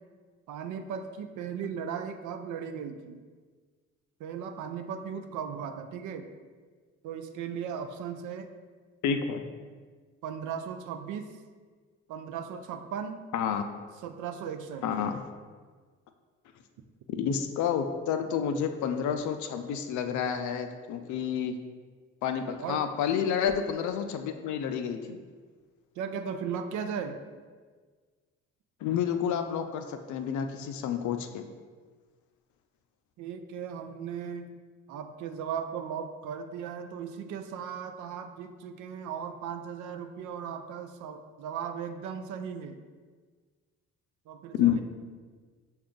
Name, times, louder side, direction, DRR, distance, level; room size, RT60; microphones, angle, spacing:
voice 1, 0.5-3.2 4.2-6.3 7.0-8.5 10.2-11.4 12.1-13.2 14.0-14.9 22.6-22.8 26.0-27.2 33.2-34.5 34.9-42.8 44.3-44.8, right 7 dB, 60° right, 8 dB, 0.5 m, -37 dB
voice 2, 9.0-9.4 13.3-13.7 14.8-15.2 17.1-21.6 22.2-25.2 28.8-31.4 44.5-44.8, left 8 dB, 60° left, 7 dB, 0.5 m, -29 dB
5.7 x 2.4 x 3.7 m, 1.5 s
hypercardioid pair, 55°, 34 cm